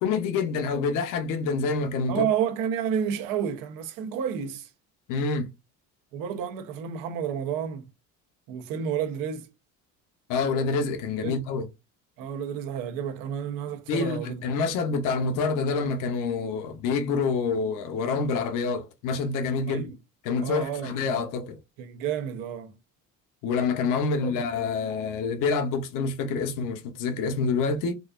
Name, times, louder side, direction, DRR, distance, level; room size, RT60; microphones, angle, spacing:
voice 1, 0.0-2.3 5.1-5.5 10.3-11.7 13.9-19.8 20.2-21.6 23.4-27.9, left 4 dB, 70° left, 0.8 m, -27 dB
voice 2, 2.1-4.7 6.1-7.8 8.5-9.5 11.2-11.4 12.2-14.4 19.7-19.9 20.4-21.1 21.8-22.7 24.3-24.4, right 8 dB, 90° right, 0.9 m, -30 dB
3.9 x 2.4 x 2.5 m
cardioid pair, 175°, 33 cm